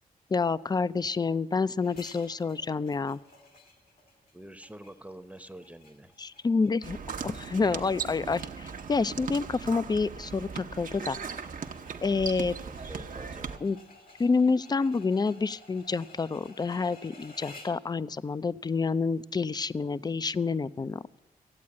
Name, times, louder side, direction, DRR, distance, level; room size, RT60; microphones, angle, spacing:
voice 1, 0.3-3.2 6.2-7.0 7.2-11.2 12.0-12.6 13.6-13.8 14.2-21.0, left 4 dB, 25° left, 17 dB, 0.4 m, -28 dB
sound 1, 1.8-17.9, left 2 dB, 75° left, 2.1 m, -55 dB
voice 2, 4.3-6.3 12.6-13.7, right 1 dB, 10° right, 10 dB, 0.8 m, -47 dB
sound 2, 6.8-13.6, right 6 dB, 60° right, 0.9 m, -38 dB
15.0 x 8.5 x 8.5 m, 1.1 s
cardioid pair, 55°, 15 cm